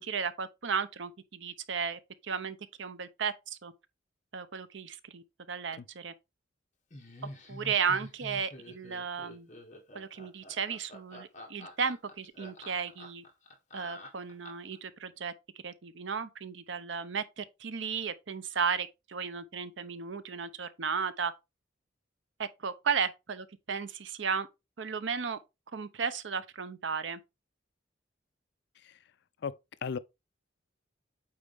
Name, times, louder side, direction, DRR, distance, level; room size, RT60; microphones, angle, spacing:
voice 1, 0.0-3.7 4.3-6.1 7.5-9.5 9.9-13.2 13.7-15.3 15.6-21.3 22.4-24.5 24.8-25.4 25.7-27.2, right 6 dB, 75° right, 0.7 m, -34 dB
voice 2, 5.8-5.9 28.8-29.0 29.4-29.6 29.8-30.0, left 6 dB, 60° left, 0.4 m, -36 dB
Laughter, 6.9-14.8, left 1 dB, 40° left, 1.7 m, -47 dB
8.7 x 4.2 x 3.5 m
head